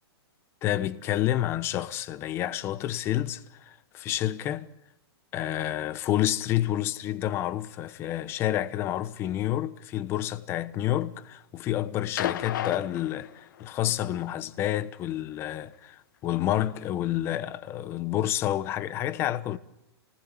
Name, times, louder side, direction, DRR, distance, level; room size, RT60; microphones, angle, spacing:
voice 1, 0.6-4.7 5.3-19.6, left 13 dB, 20° left, 1.0 m, -29 dB
sound 1, 12.2-13.8 15.1-15.2, left 11 dB, 50° left, 1.3 m, -33 dB
29.5 x 19.0 x 7.4 m
hypercardioid pair, 170°, 14 cm